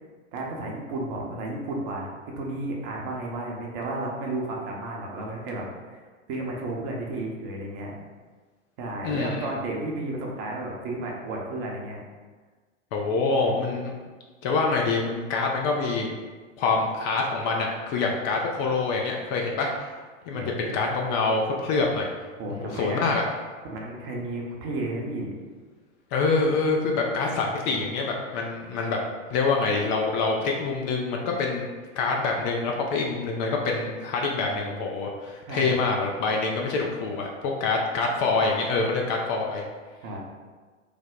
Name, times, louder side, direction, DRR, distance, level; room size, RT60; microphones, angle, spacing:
voice 1, 0.3-6.0 6.3-7.9 8.8-12.0 20.3-20.8 22.4-23.0 23.6-25.3 35.5-35.8 40.0-40.2, right 2 dB, 45° right, -1 dB, 0.8 m, -33 dB
voice 2, 9.0-9.4 12.9-13.9 14.4-16.2 16.6-19.9 20.3-22.1 22.6-23.2 26.1-29.0 29.3-31.7 32.0-39.6, left 3 dB, 35° left, 0 dB, 0.4 m, -26 dB
3.2 x 2.1 x 3.7 m, 1.4 s
hypercardioid pair, 100°, 38 cm